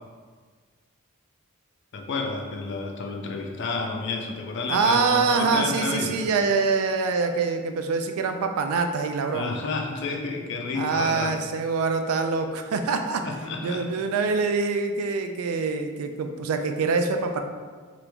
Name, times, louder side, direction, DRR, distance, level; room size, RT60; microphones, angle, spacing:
voice 1, 1.9-6.3 9.3-11.4 13.2-13.8, left 3 dB, 55° left, 2 dB, 0.4 m, -30 dB
voice 2, 4.7-9.6 10.7-13.2 13.6-17.4, right 4 dB, 85° right, 6 dB, 0.3 m, -25 dB
3.0 x 2.4 x 3.4 m, 1.6 s
head